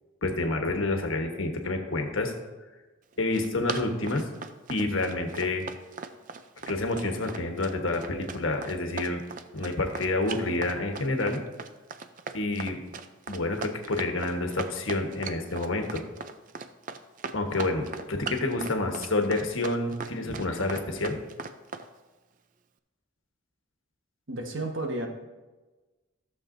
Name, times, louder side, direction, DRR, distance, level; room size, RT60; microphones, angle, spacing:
voice 1, 0.2-2.3 3.2-4.2 4.7-5.6 6.7-9.2 9.5-11.4 12.3-12.8 13.3-16.0 17.3-21.2, left 2 dB, 70° left, 4 dB, 1.2 m, -28 dB
Run, 3.1-21.9, right 5 dB, 40° right, 0.4 m, -38 dB
voice 2, 24.3-25.1, right 1 dB, 65° right, 2 dB, 1.3 m, -32 dB
14.0 x 7.0 x 2.6 m, 1.2 s
head